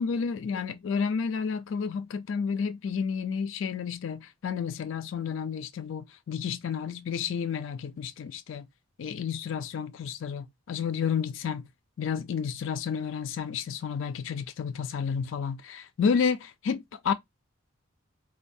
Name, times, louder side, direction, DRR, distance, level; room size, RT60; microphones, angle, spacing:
voice 1, 0.0-8.7 9.0-11.7 12.0-17.1, left 6 dB, 65° left, 0.3 m, -31 dB
4.2 x 2.2 x 2.6 m
head